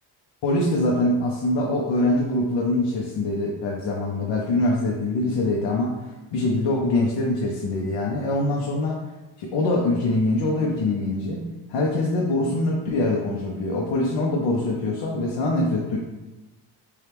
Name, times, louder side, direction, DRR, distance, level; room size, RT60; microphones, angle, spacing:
voice 1, 0.4-6.0 6.3-9.1 9.4-16.0, left 2 dB, 70° left, -1 dB, 0.7 m, -24 dB
4.4 x 2.4 x 3.4 m, 1.1 s
cardioid pair, 125°, 45 cm